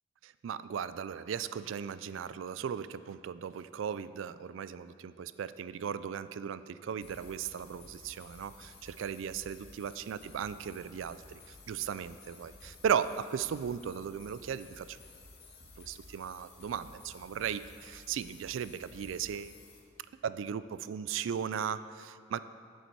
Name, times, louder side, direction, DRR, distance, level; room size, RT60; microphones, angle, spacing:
voice 1, 0.4-11.4 11.7-15.0 15.8-19.6 20.2-22.4, right 8 dB, 90° right, 14 dB, 0.3 m, -36 dB
sound 1, 7.0-19.8, left 3 dB, 60° left, 1.5 m, -54 dB
12.5 x 6.8 x 4.6 m, 2.2 s
head